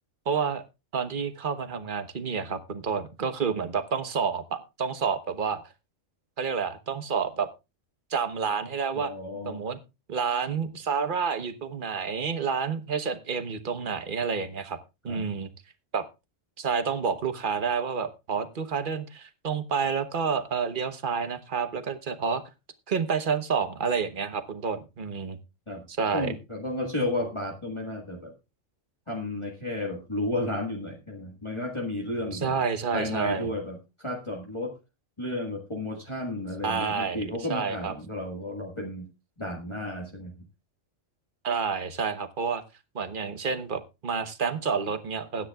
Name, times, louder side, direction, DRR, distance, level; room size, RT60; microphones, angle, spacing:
voice 1, 0.3-0.6 0.9-5.6 6.4-7.5 8.1-9.1 9.4-9.8 10.1-14.8 15.0-15.5 15.9-16.1 16.6-22.4 22.9-25.4 26.0-26.3 32.3-33.5 36.6-37.2 37.5-37.9 41.4-42.6 42.9-45.5, right 6 dB, 40° right, 10 dB, 1.2 m, -29 dB
voice 2, 8.9-9.6 15.1-15.2 25.7-25.8 26.1-28.3 29.1-32.5 32.9-34.8 35.2-39.1 39.4-40.3, left 1 dB, 20° left, -1 dB, 1.7 m, -32 dB
21.0 x 9.7 x 2.4 m, 0.26 s
omnidirectional pair, 1.4 m